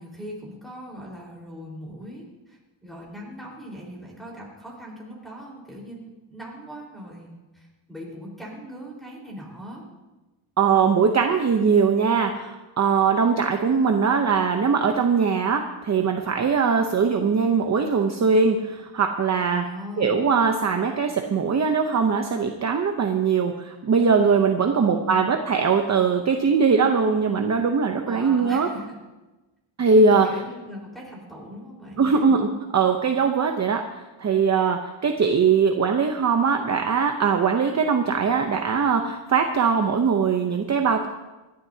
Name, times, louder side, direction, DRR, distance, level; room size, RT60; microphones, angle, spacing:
voice 1, 0.0-9.8 19.3-20.2 24.7-25.3 28.0-29.0 30.0-32.3, equal, ahead, -3 dB, 4.3 m, -40 dB
voice 2, 10.6-19.6 20.0-28.7 29.8-30.3 32.0-41.1, right 5 dB, 35° right, 4 dB, 0.8 m, -21 dB
26.0 x 11.5 x 2.8 m, 1.1 s
wide cardioid pair, 165°, 47 cm